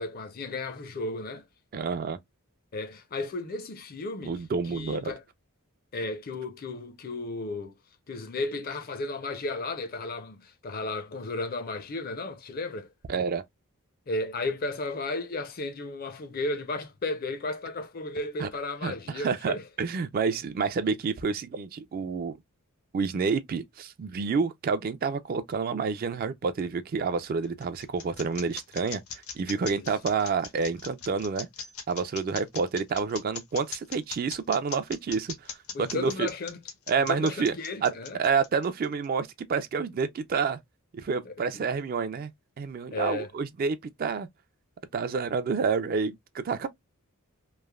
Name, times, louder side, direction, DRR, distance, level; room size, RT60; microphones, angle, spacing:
voice 1, 0.0-1.4 2.7-4.4 4.7-5.2 5.9-7.8 8.1-12.9 14.1-19.7 29.7-29.9 35.7-36.6 37.1-38.2 41.2-41.7 42.9-43.3, left 2 dB, 40° left, 0.5 m, -34 dB
voice 2, 1.7-2.2 4.3-5.1 13.1-13.4 18.4-18.5 18.8-22.4 22.9-29.0 29.3-31.5 31.9-36.3 36.9-37.5 37.8-40.6 40.9-42.3 42.6-44.3 44.9-46.7, right 5 dB, 40° right, 0.3 m, -29 dB
sound 1, 27.2-39.1, left 7 dB, 75° left, 0.7 m, -39 dB
3.1 x 2.0 x 2.2 m
head